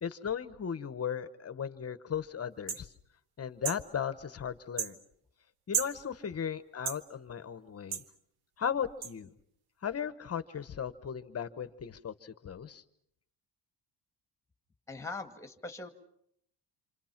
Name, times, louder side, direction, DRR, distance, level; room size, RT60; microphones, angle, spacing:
voice 1, 0.0-2.9 3.4-5.0 5.7-8.0 8.6-9.3 9.8-12.8, left 8 dB, 35° left, 12 dB, 1.1 m, -36 dB
sound 1, 2.7-2.8 3.6-3.8 4.8-4.9 5.7-5.9 6.8-7.0 7.9-8.1 9.0-9.1, right 7 dB, 65° right, 1.4 m, -33 dB
voice 2, 14.9-15.9, left 3 dB, 5° left, 6 dB, 1.9 m, -41 dB
28.0 x 27.5 x 5.9 m, 0.73 s
cardioid pair, 150°, 42 cm